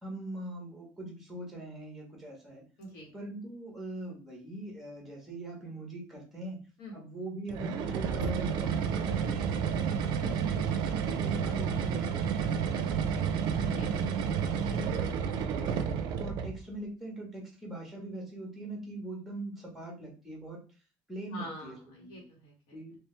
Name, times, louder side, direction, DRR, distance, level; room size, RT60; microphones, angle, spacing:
voice 1, 0.0-2.6 3.1-6.7 6.9-10.1 10.5-13.5 13.9-15.7 16.0-20.6 21.1-22.2 22.7-23.0, right 1 dB, 5° right, -1 dB, 1.3 m, -42 dB
voice 2, 2.8-3.1 6.8-6.9 10.2-10.6 13.6-13.9 21.3-22.8, left 1 dB, 85° left, -2 dB, 1.8 m, -44 dB
sound 1, 7.5-16.6, right 7 dB, 65° right, 0.5 m, -30 dB
3.1 x 2.9 x 3.3 m, 0.36 s
cardioid pair, 170°, 8 cm